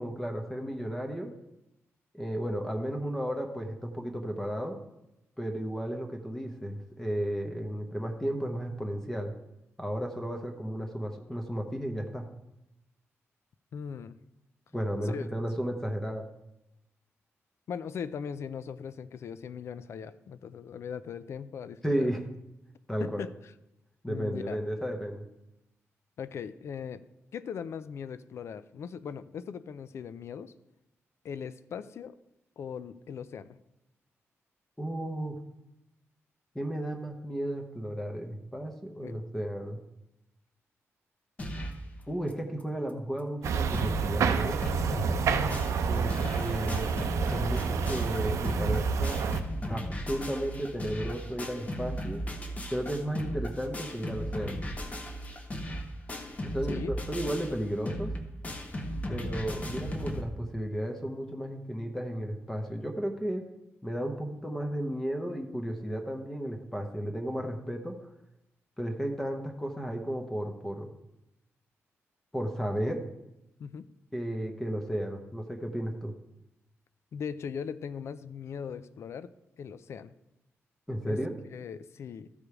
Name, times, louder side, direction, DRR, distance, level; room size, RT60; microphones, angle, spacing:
voice 1, 0.0-1.3 2.1-4.8 5.4-9.3 9.8-12.2 14.7-16.3 21.8-22.2 22.9-23.2 24.0-25.2 34.8-35.3 36.5-39.8 42.1-44.6 45.9-47.0 47.3-49.2 49.7-52.2 52.7-54.6 56.4-58.1 59.1-63.4 63.8-68.1 68.8-70.9 72.3-73.0 74.1-76.1 80.9-81.4, equal, 10° left, 3 dB, 0.8 m, -33 dB
voice 2, 13.7-14.1 15.1-15.3 17.7-22.1 23.0-23.3 24.1-24.6 26.2-27.0 27.3-30.5 31.2-32.2 32.6-33.6 39.0-39.2 45.2-45.7 46.1-46.2 46.6-46.7 56.7-56.9 73.6-73.9 77.1-79.3 79.6-80.1 81.1-81.3 81.5-82.3, left 7 dB, 65° left, 14 dB, 0.4 m, -39 dB
sound 1, 41.4-41.9 42.3-42.4 42.6-42.7 43.2-43.3 43.5-44.1 44.4-60.2, equal, 30° left, 0.9 m, -36 dB
sound 2, 43.4-49.4, right 6 dB, 85° right, 0.6 m, -29 dB
13.5 x 5.0 x 4.8 m, 0.90 s
wide cardioid pair, 160°, 5 cm